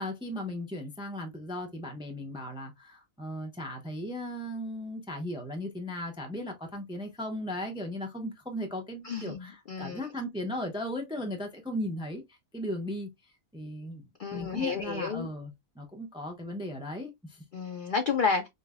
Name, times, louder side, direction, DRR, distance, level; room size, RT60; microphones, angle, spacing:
voice 1, 0.0-12.2 12.5-13.1 13.5-14.1 14.3-17.4, left 1 dB, 5° right, 0.4 m, -36 dB
voice 2, 9.0-10.0 14.2-15.3 17.5-18.5, left 5 dB, 65° left, 0.5 m, -31 dB
5.3 x 2.1 x 2.3 m
omnidirectional pair, 1.5 m